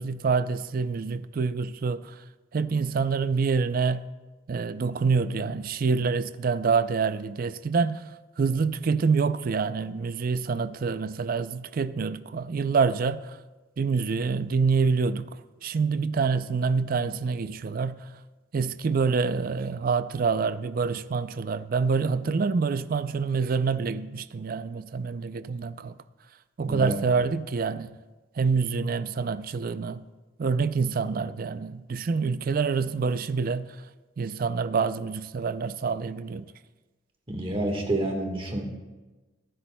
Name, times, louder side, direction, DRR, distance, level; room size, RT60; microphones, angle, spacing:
voice 1, 0.0-2.2 2.5-4.1 4.5-8.0 8.4-13.4 13.8-15.4 15.6-18.0 18.5-26.0 26.6-27.9 28.4-30.0 30.4-33.7 34.2-36.5, right 5 dB, 50° right, 0.4 m, -26 dB
voice 2, 26.6-27.0 37.3-38.6, right 1 dB, 30° right, 1.5 m, -28 dB
22.0 x 10.5 x 2.2 m
head